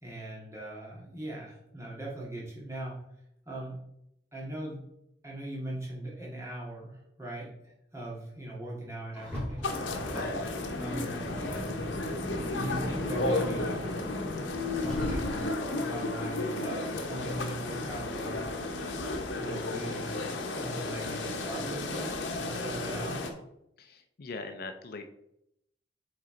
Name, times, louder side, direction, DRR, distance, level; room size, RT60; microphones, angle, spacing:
voice 1, 0.0-3.0 3.5-3.8 4.3-4.8 5.2-7.5 7.9-9.8 10.8-11.2 12.5-13.9 14.7-15.4 15.8-18.4 19.4-23.3, right 1 dB, 15° right, -4 dB, 2.0 m, -39 dB
Car, 9.1-15.7, left 1 dB, 5° left, 2.6 m, -37 dB
sound 1, 9.6-23.3, left 2 dB, 80° left, 1.0 m, -33 dB
voice 2, 23.8-25.1, left 3 dB, 55° left, 7 dB, 0.5 m, -42 dB
7.5 x 3.9 x 3.8 m, 0.80 s
head